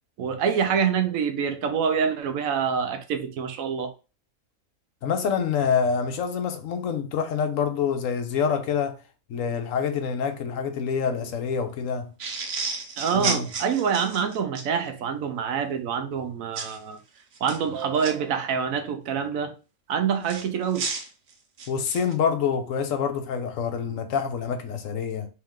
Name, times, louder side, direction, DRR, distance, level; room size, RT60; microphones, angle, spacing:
voice 1, 0.2-3.9 13.0-17.0 17.4-19.5 19.9-20.9, right 7 dB, 80° right, 1.0 m, -26 dB
voice 2, 5.0-9.0 9.3-12.1 13.1-13.5 21.7-25.3, left 6 dB, 70° left, 1.0 m, -26 dB
sound 1, 12.2-14.7 16.6-16.8 17.3-18.1 20.3-22.1, right 4 dB, 55° right, 0.9 m, -32 dB
3.3 x 3.2 x 3.5 m
omnidirectional pair, 1.4 m